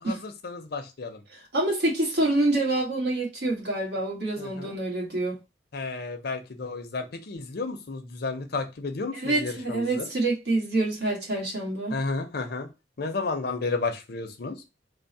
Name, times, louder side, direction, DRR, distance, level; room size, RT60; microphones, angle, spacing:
voice 1, 0.0-1.2 4.4-4.8 5.7-10.1 11.9-12.7 13.0-14.6, left 3 dB, 60° left, 0.6 m, -32 dB
voice 2, 1.3-5.4 9.1-12.0, right 2 dB, 65° right, 1.4 m, -27 dB
3.4 x 2.1 x 4.0 m
head